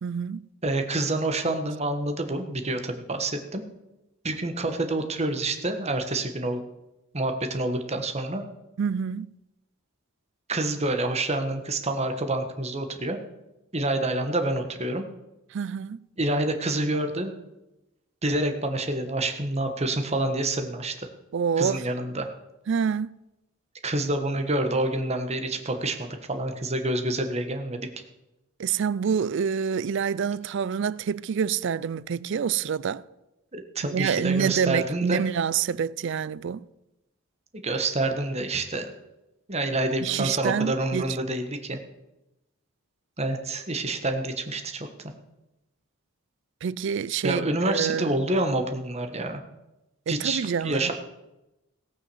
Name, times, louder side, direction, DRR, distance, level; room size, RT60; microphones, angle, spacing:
voice 1, 0.0-0.4 8.8-9.3 15.5-16.0 21.3-21.9 22.7-23.1 28.6-33.0 33.8-36.6 40.0-41.0 46.6-48.1 50.1-50.9, right 7 dB, 60° right, 0.4 m, -27 dB
voice 2, 0.6-3.6 4.2-6.6 7.1-8.4 10.5-13.2 13.7-15.0 16.2-17.3 18.2-20.9 21.6-22.3 23.8-27.9 33.5-35.2 37.6-38.9 39.5-41.8 43.2-44.9 47.2-49.4 50.1-50.9, right 2 dB, 30° right, 1.4 m, -27 dB
18.0 x 6.3 x 7.0 m
head